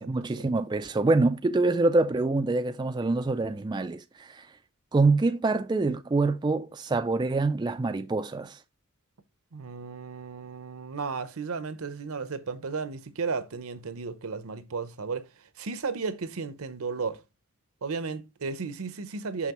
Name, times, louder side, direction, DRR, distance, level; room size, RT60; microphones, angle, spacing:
voice 1, 0.0-4.5 4.9-8.6, right 3 dB, 20° right, 0.3 m, -25 dB
voice 2, 9.5-15.3 15.6-17.2 17.8-19.5, right 4 dB, 70° right, 0.7 m, -34 dB
6.1 x 5.7 x 3.0 m
head